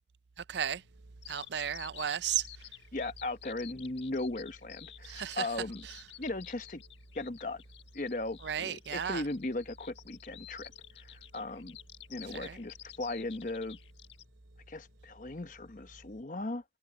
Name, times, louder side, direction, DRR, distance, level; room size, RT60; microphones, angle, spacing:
voice 1, 0.5-0.8 1.3-2.5 5.0-5.5 5.8-6.0 8.4-9.2 12.3-12.6, right 9 dB, 65° right, 0.5 m, -34 dB
sound 1, 0.8-16.2, right 1 dB, 90° right, 3.3 m, -58 dB
Bird vocalization bird call bird song, 1.2-14.2, left 12 dB, 75° left, 1.4 m, -51 dB
voice 2, 2.9-5.9 6.2-6.8 7.1-7.6 7.9-10.7 11.0-11.8 12.1-13.8 14.7-16.6, left 2 dB, 45° left, 1.0 m, -37 dB
head